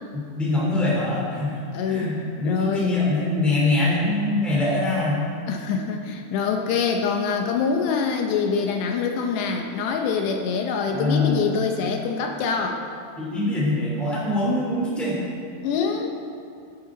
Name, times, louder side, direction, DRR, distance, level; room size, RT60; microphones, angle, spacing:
voice 1, 0.3-1.6 1.8-5.3 10.9-11.5 13.2-15.2, left 2 dB, ahead, -6 dB, 2.1 m, -23 dB
voice 2, 1.7-2.2 2.4-2.9 5.5-12.8 15.6-16.1, left 5 dB, 75° left, 3 dB, 2.6 m, -25 dB
14.0 x 11.0 x 3.9 m, 2.4 s
omnidirectional pair, 5.6 m